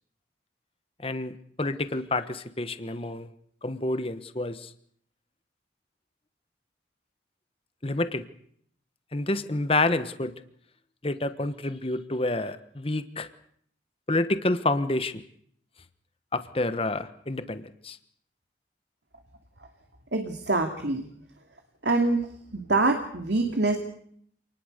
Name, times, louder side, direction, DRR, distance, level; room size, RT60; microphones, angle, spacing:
voice 1, 1.0-3.3 3.6-4.7 7.8-8.2 9.1-10.3 11.0-13.3 14.1-15.2 16.3-18.0, left 2 dB, 30° left, 11 dB, 1.2 m, -28 dB
voice 2, 20.1-21.1 21.8-22.3 22.5-23.8, right 2 dB, 70° right, 4 dB, 2.5 m, -25 dB
27.5 x 20.0 x 6.7 m, 0.65 s
head